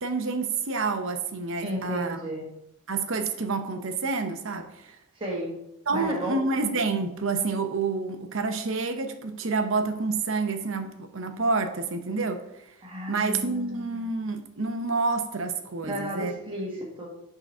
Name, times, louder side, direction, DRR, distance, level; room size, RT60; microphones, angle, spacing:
voice 1, 0.0-2.2 2.9-5.0 5.9-12.4 13.1-16.3, right 4 dB, 60° right, 6 dB, 0.8 m, -28 dB
voice 2, 1.6-2.5 5.1-5.5 5.9-6.3 12.8-14.1 15.8-17.1, equal, 25° right, -2 dB, 1.5 m, -33 dB
7.4 x 3.9 x 5.4 m, 0.83 s
head